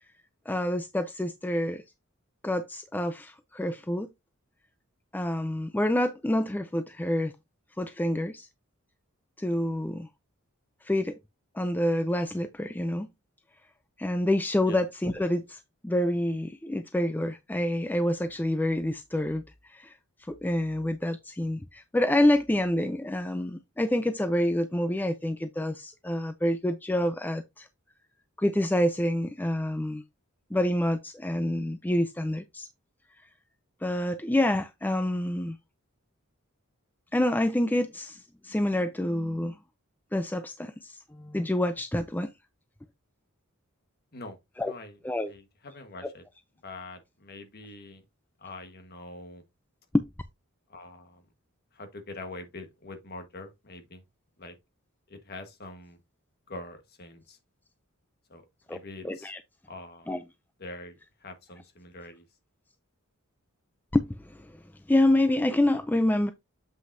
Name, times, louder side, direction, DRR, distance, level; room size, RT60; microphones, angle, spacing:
voice 1, 0.5-1.8 2.4-4.1 5.1-7.3 7.8-8.5 9.4-10.1 10.8-11.2 11.5-13.1 14.0-19.4 19.7-19.9 20.3-27.7 28.4-30.0 30.5-32.7 33.8-35.6 37.1-39.6 40.1-42.3 44.6-44.7 45.0-45.3 46.0-46.1 49.9-50.0 58.7-58.8 59.0-59.4 60.1-60.2 63.9-64.5 64.9-66.3, left 1 dB, 10° left, 0.4 m, -27 dB
voice 2, 44.7-45.0 45.3-46.2 46.6-48.0 48.4-49.4 50.7-51.2 51.7-54.0 54.4-54.5 55.1-56.0 56.5-57.4 58.3-58.4 58.7-59.3 59.7-60.1 60.6-62.2, left 2 dB, 45° left, 1.4 m, -44 dB
7.7 x 5.8 x 2.6 m
head